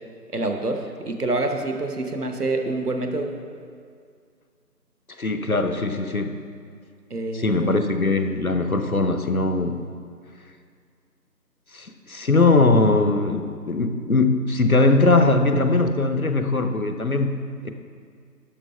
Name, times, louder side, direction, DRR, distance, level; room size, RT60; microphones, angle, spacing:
voice 1, 0.3-3.3 7.1-7.8, right 2 dB, 65° right, 5 dB, 1.1 m, -27 dB
voice 2, 5.2-6.4 7.3-9.8 11.7-17.4 17.6-17.7, left 3 dB, 55° left, 7 dB, 0.8 m, -20 dB
11.5 x 5.6 x 5.5 m, 2.2 s
figure-of-eight pair, 175°, 50 cm